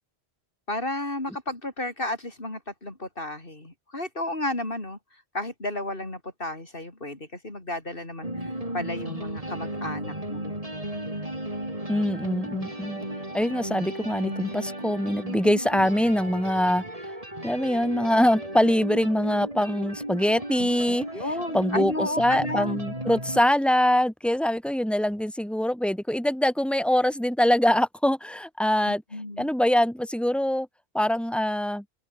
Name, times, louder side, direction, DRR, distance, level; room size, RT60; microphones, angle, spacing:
voice 1, 0.7-5.0 5.3-10.5 21.1-22.8 28.9-29.5, left 1 dB, 55° left, 4.7 m, -33 dB
sound 1, 8.2-23.4, right 1 dB, 35° right, 6.3 m, -35 dB
voice 2, 11.9-13.0 13.3-16.8 17.4-21.1 21.5-29.0 29.4-30.7 30.9-31.8, equal, ahead, 4.9 m, -23 dB
omnidirectional pair, 1.1 m